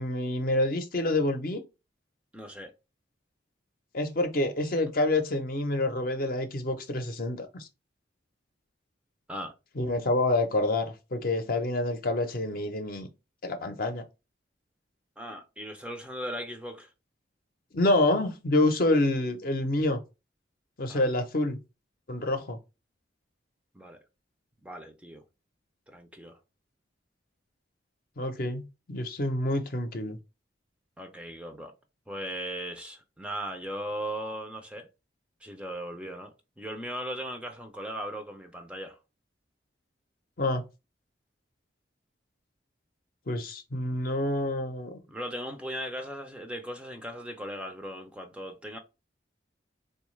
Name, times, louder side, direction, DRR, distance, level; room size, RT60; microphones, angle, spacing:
voice 1, 0.0-1.6 3.9-7.7 9.8-13.1 13.4-14.0 17.7-20.0 20.8-21.6 22.1-22.6 28.2-30.2 40.4-40.6 43.3-45.0, left 2 dB, 50° left, 0.6 m, -27 dB
voice 2, 2.3-2.7 9.3-9.5 15.2-16.9 20.9-21.1 23.7-24.0 24.6-25.2 25.9-26.4 31.0-31.7 32.1-34.9 35.4-39.0 45.1-48.8, equal, 5° right, 0.4 m, -38 dB
3.9 x 2.3 x 3.1 m
head